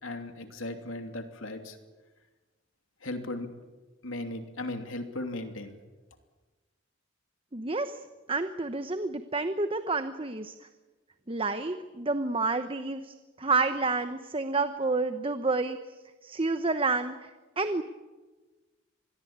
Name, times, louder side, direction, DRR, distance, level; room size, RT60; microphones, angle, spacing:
voice 1, 0.0-1.8 3.0-3.5 4.0-5.8, left 2 dB, 75° left, 6 dB, 3.0 m, -37 dB
voice 2, 7.5-8.0 8.3-10.5 11.3-15.8 16.2-17.3 17.6-17.8, right 3 dB, 25° right, 9 dB, 1.0 m, -29 dB
26.0 x 21.0 x 8.9 m, 1.3 s
head